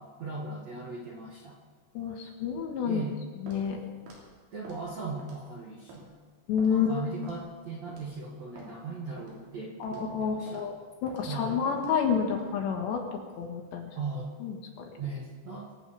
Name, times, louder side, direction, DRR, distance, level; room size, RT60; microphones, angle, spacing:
voice 1, 0.0-1.6 2.8-3.2 4.5-6.2 6.7-10.7 11.3-11.7 14.0-14.3 15.0-15.7, right 3 dB, 55° right, -4 dB, 2.0 m, -38 dB
voice 2, 2.0-3.0 3.4-3.8 6.5-7.3 9.8-13.9 14.4-14.9, left 6 dB, 70° left, 2 dB, 3.6 m, -30 dB
Walk footsteps, 3.5-3.7 4.1-4.2 4.6-4.8 5.2-5.5 5.9-6.0 6.6-6.7 7.2-7.5 7.9-8.1 8.6-8.7 9.2-9.4 9.8-10.1 10.5-10.6 11.1-11.2 11.7-11.9 12.3-12.5, equal, 70° right, 5.4 m, -47 dB
24.0 x 8.4 x 5.6 m, 1.5 s
omnidirectional pair, 5.5 m